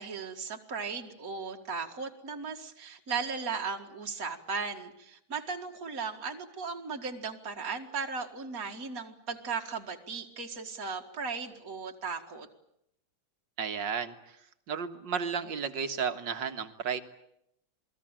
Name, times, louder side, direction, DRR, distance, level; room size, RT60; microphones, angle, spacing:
voice 1, 0.0-12.5, right 5 dB, 50° right, 3 dB, 2.4 m, -37 dB
voice 2, 13.6-14.4 14.7-17.0, right 6 dB, 80° right, 8 dB, 2.3 m, -33 dB
28.0 x 20.0 x 9.0 m, 0.76 s
omnidirectional pair, 2.0 m